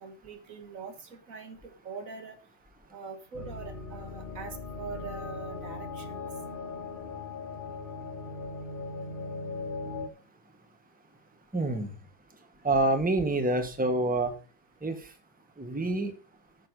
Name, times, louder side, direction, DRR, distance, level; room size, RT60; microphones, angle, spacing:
voice 1, 0.0-2.4 2.9-6.2, right 4 dB, 80° right, 7 dB, 1.9 m, -43 dB
sound 1, 3.3-10.1, left 3 dB, 45° left, 1.1 m, -39 dB
voice 2, 11.5-11.9 12.6-14.3 14.8-15.0 15.6-16.1, right 2 dB, 5° right, 7 dB, 1.1 m, -27 dB
9.4 x 6.4 x 5.3 m, 0.35 s
omnidirectional pair, 1.4 m